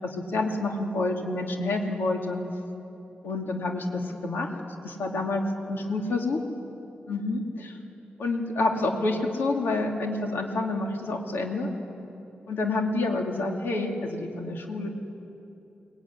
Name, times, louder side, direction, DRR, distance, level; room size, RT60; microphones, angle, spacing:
voice 1, 0.0-2.4 3.2-4.5 4.8-6.4 7.1-7.8 8.2-11.7 12.5-14.9, left 2 dB, 70° left, 2 dB, 2.9 m, -28 dB
24.0 x 20.5 x 9.9 m, 2.9 s
wide cardioid pair, 165°, 4 cm